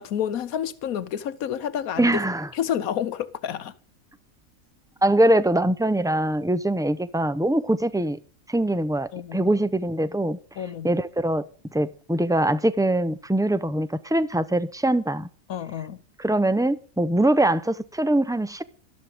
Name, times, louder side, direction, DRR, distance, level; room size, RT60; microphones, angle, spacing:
voice 1, 0.0-2.2 2.5-3.7 9.1-9.5 10.6-10.9 15.5-16.0, left 9 dB, 85° left, 1.3 m, -29 dB
voice 2, 2.0-2.5 5.0-8.2 8.5-10.4 10.8-11.5 11.7-15.3 16.2-18.6, right 1 dB, 5° right, 0.3 m, -23 dB
13.5 x 12.5 x 5.0 m
omnidirectional pair, 1.5 m